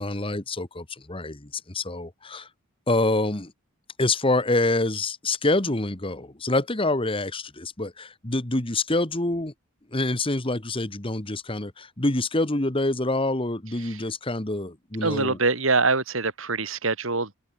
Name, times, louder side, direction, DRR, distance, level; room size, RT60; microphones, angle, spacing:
voice 1, 0.0-2.5 2.9-3.5 4.0-9.5 9.9-15.4, left 2 dB, 25° left, 1.6 m, -26 dB
voice 2, 15.0-17.4, right 3 dB, 70° right, 3.0 m, -24 dB
open air
head